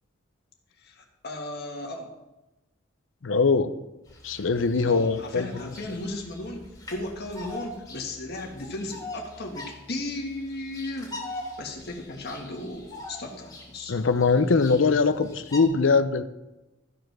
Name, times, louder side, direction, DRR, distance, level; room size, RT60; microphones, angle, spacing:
voice 1, 0.8-2.1 4.8-6.6 6.9-11.1 11.6-13.9, left 2 dB, 55° left, 1 dB, 1.8 m, -35 dB
voice 2, 3.2-3.7 4.2-5.5 13.9-16.2, left 4 dB, 75° left, 12 dB, 0.6 m, -22 dB
Bird vocalization bird call bird song, 4.1-15.6, left 1 dB, 20° left, 2.6 m, -43 dB
13.5 x 5.1 x 6.1 m, 1.0 s
head